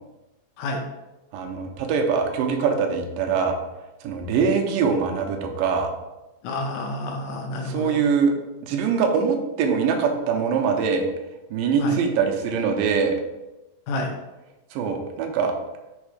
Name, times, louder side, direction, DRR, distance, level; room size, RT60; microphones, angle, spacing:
voice 1, 1.3-3.6 4.0-5.9 7.6-8.3 8.6-11.1 11.5-13.2 14.7-15.5, right 6 dB, 85° right, 3 dB, 2.4 m, -23 dB
voice 2, 6.4-8.0 11.8-12.0 13.9-14.1, left 2 dB, 75° left, 2 dB, 2.0 m, -29 dB
6.0 x 3.7 x 4.9 m, 1.0 s
omnidirectional pair, 3.9 m